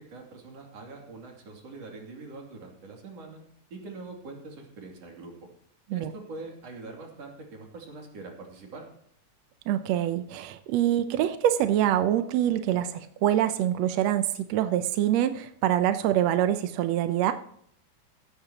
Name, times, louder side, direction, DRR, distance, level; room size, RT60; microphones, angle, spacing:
voice 1, 0.0-3.4 3.7-5.5 5.9-8.9, right 3 dB, 50° right, 1 dB, 3.7 m, -43 dB
voice 2, 9.7-17.3, right 11 dB, 75° right, 9 dB, 1.6 m, -25 dB
16.0 x 14.0 x 2.9 m, 0.66 s
omnidirectional pair, 3.7 m